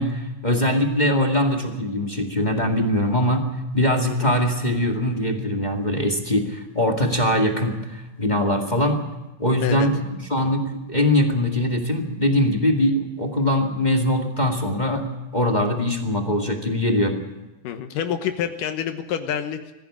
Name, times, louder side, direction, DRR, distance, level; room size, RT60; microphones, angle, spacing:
voice 1, 0.0-3.5 3.7-9.0 9.4-10.0 10.3-10.6 10.9-17.2, left 1 dB, 20° left, 2 dB, 1.5 m, -22 dB
voice 2, 17.6-19.7, left 9 dB, 85° left, 7 dB, 2.7 m, -27 dB
21.5 x 15.5 x 8.7 m, 1.0 s
omnidirectional pair, 3.7 m